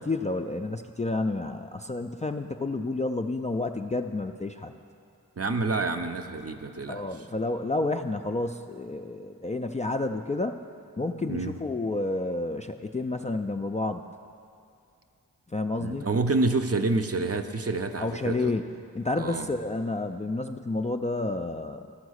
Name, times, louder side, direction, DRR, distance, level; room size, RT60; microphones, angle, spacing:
voice 1, 0.0-4.7 6.9-10.6 11.0-14.1 15.5-16.1 18.0-18.7 18.9-21.9, left 2 dB, 20° left, 5 dB, 0.3 m, -30 dB
voice 2, 5.4-7.0 11.3-11.5 15.8-18.5 19.2-19.5, right 3 dB, 40° right, 6 dB, 0.6 m, -28 dB
13.5 x 4.7 x 6.3 m, 2.5 s
cardioid pair, 40°, 36 cm